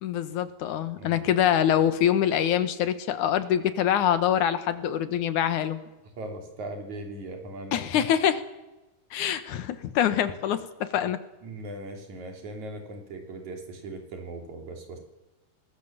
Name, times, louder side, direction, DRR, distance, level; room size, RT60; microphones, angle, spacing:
voice 1, 0.0-5.8 7.7-8.4 9.1-11.2, left 10 dB, 90° left, 11 dB, 2.8 m, -25 dB
voice 2, 6.2-7.8 11.4-15.0, right 2 dB, 70° right, 3 dB, 4.6 m, -39 dB
25.0 x 19.5 x 7.4 m, 1.1 s
omnidirectional pair, 3.4 m